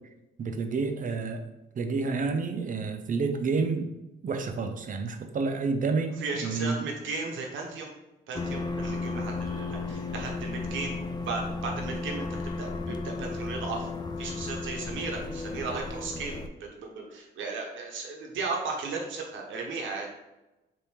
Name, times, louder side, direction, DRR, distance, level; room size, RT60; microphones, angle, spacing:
voice 1, 0.4-1.4 1.8-3.9 4.2-6.7, right 4 dB, 40° right, 6 dB, 0.6 m, -29 dB
voice 2, 6.2-7.9 8.3-13.9 14.2-20.1, right 3 dB, 75° right, 0 dB, 0.9 m, -35 dB
sound 1, 8.3-16.5, left 3 dB, 20° left, 0.3 m, -34 dB
3.6 x 2.6 x 4.3 m, 0.99 s
cardioid pair, 90°, 20 cm